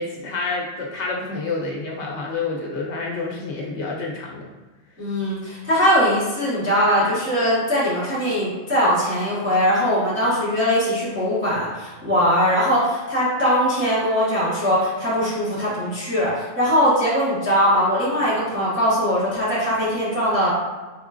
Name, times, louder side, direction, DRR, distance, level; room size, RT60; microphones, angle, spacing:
voice 1, 0.0-4.5, left 3 dB, 75° left, -1 dB, 0.9 m, -28 dB
voice 2, 5.0-20.5, equal, 10° right, -10 dB, 1.0 m, -21 dB
4.4 x 3.5 x 2.4 m, 1.2 s
omnidirectional pair, 1.2 m